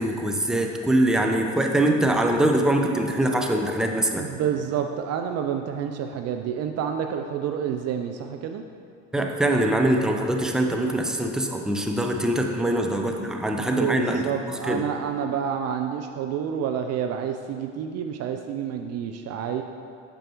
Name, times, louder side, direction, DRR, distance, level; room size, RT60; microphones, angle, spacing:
voice 1, 0.0-4.3 9.1-14.3 14.7-14.8, right 1 dB, ahead, 2 dB, 0.7 m, -23 dB
voice 2, 3.8-8.6 12.7-12.9 13.4-19.6, right 8 dB, 40° right, 5 dB, 0.5 m, -29 dB
8.9 x 6.8 x 3.0 m, 2.3 s
hypercardioid pair, 65°, 38 cm